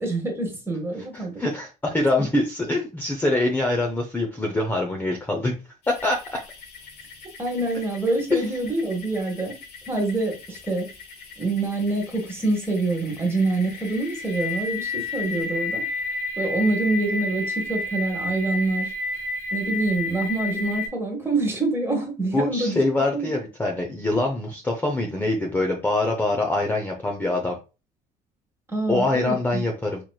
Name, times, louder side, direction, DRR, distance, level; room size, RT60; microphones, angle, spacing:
voice 1, 0.0-1.3 2.2-2.3 7.4-9.5 9.9-10.9 11.4-15.8 16.4-18.9 19.5-22.8 23.1-23.3 28.7-29.6, right 2 dB, 15° right, 1 dB, 1.6 m, -26 dB
voice 2, 1.1-5.5 5.9-6.2 8.3-8.4 22.3-27.6 28.9-30.0, left 2 dB, 10° left, 1 dB, 0.6 m, -24 dB
sound 1, 5.8-20.9, left 3 dB, 75° left, 1.1 m, -33 dB
4.2 x 3.0 x 2.3 m, 0.30 s
cardioid pair, 110°, 17 cm